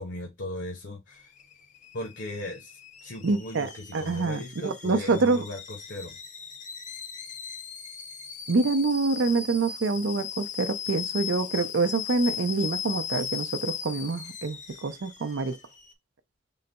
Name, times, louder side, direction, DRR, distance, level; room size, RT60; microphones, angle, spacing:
voice 1, 0.0-1.3 1.9-6.1, left 1 dB, 65° left, 0.9 m, -38 dB
Alarm / Boiling, 1.1-15.9, left 8 dB, 40° left, 0.7 m, -38 dB
voice 2, 3.2-5.4 8.5-15.6, right 3 dB, 70° right, 0.5 m, -26 dB
3.9 x 2.2 x 3.9 m
head